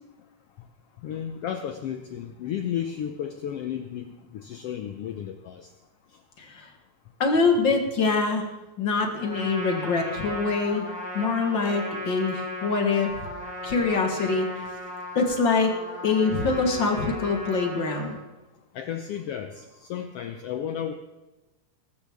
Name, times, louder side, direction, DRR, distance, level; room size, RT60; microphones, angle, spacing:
voice 1, 1.0-5.7 18.7-20.9, left 9 dB, 75° left, 7 dB, 1.4 m, -33 dB
voice 2, 7.2-8.5 8.8-10.9 11.1-13.2 13.6-14.7 15.1-15.7 16.0-18.2, left 4 dB, 50° left, 4 dB, 1.7 m, -24 dB
Trumpet, 9.2-18.2, left 1 dB, ahead, 4.5 m, -36 dB
21.0 x 12.5 x 3.5 m, 1.1 s
omnidirectional pair, 3.5 m